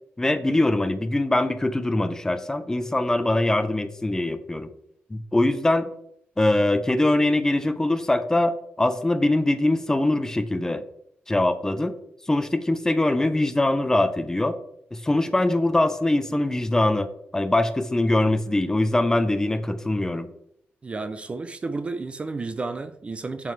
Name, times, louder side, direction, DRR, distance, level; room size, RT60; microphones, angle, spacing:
voice 1, 0.2-4.7 5.1-5.9 6.4-10.8 11.3-11.9 12.3-14.6 14.9-20.3, left 2 dB, 15° left, 9 dB, 0.6 m, -22 dB
voice 2, 20.8-23.5, right 3 dB, 30° right, 10 dB, 0.4 m, -32 dB
8.4 x 7.2 x 3.3 m, 0.72 s
wide cardioid pair, 140°, 4 cm